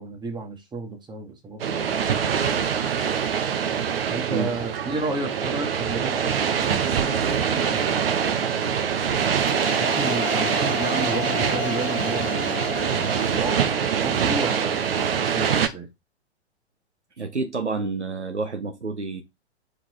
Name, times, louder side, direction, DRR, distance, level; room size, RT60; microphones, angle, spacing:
voice 1, 0.0-2.4 4.1-8.5 9.8-15.9, right 3 dB, 15° right, 1.8 m, -33 dB
sound 1, 1.6-15.7, right 7 dB, 60° right, 1.1 m, -24 dB
sound 2, 9.2-14.0, left 14 dB, 25° left, 0.7 m, -34 dB
voice 2, 17.2-19.2, right 4 dB, 85° right, 1.0 m, -29 dB
4.9 x 4.2 x 4.8 m
figure-of-eight pair, 110°, 33 cm